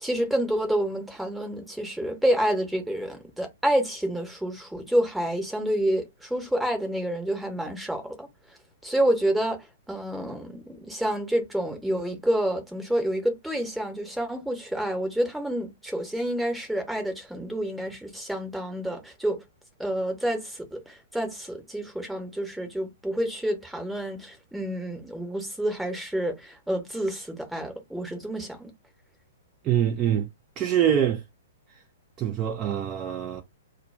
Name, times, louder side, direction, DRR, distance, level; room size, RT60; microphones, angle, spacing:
voice 1, 0.0-8.3 8.8-19.4 19.8-28.7, right 1 dB, ahead, 0.8 m, -28 dB
voice 2, 29.6-30.3 30.6-31.2 32.2-33.4, right 10 dB, 25° right, 0.4 m, -24 dB
2.2 x 2.2 x 3.1 m
figure-of-eight pair, 115°, 0 cm